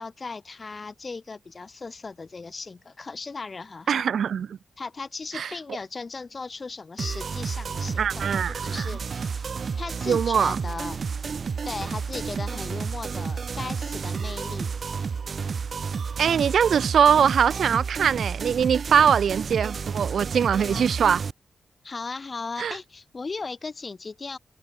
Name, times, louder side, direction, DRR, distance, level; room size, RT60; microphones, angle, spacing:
voice 1, 0.0-4.0 4.8-9.5 9.8-11.0 11.6-14.7 20.6-20.9 21.8-24.4, left 4 dB, 35° left, 7.2 m, -37 dB
voice 2, 3.9-4.6 5.3-5.5 8.0-8.8 10.1-10.6 16.2-21.2 22.6-22.8, right 7 dB, 80° right, 1.0 m, -22 dB
sound 1, 7.0-21.3, right 5 dB, 55° right, 1.9 m, -31 dB
wide cardioid pair, 115°, 0 cm